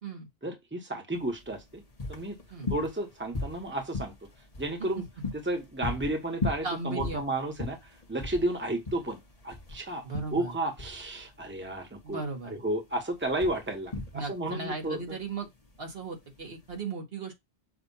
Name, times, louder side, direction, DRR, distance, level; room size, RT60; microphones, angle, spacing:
voice 1, 0.4-1.8 2.1-2.3 2.7-4.1 4.6-5.0 5.3-9.2 9.4-10.0 10.3-15.2, right 1 dB, 10° right, 1.3 m, -32 dB
sound 1, 1.1-16.8, left 3 dB, 35° left, 1.4 m, -39 dB
voice 2, 6.6-7.2 10.0-10.5 12.0-12.6 14.1-15.5 15.8-17.4, right 3 dB, 65° right, 1.8 m, -36 dB
6.8 x 2.6 x 5.5 m
omnidirectional pair, 1.1 m